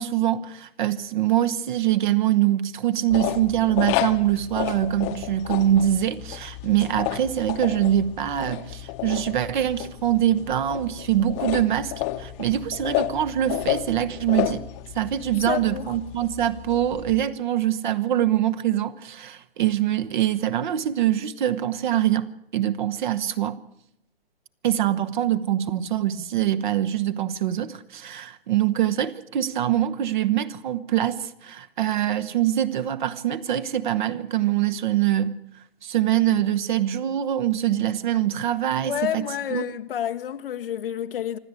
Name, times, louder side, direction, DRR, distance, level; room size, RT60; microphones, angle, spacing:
voice 1, 0.0-14.6 14.9-23.6 24.6-35.3 35.8-39.6, right 11 dB, 50° right, 1.2 m, -24 dB
sound 1, 3.1-17.3, left 15 dB, 30° left, 1.0 m, -31 dB
voice 2, 15.3-15.9 38.8-41.4, left 10 dB, 65° left, 1.0 m, -29 dB
26.5 x 12.5 x 8.3 m
hypercardioid pair, 140°, 31 cm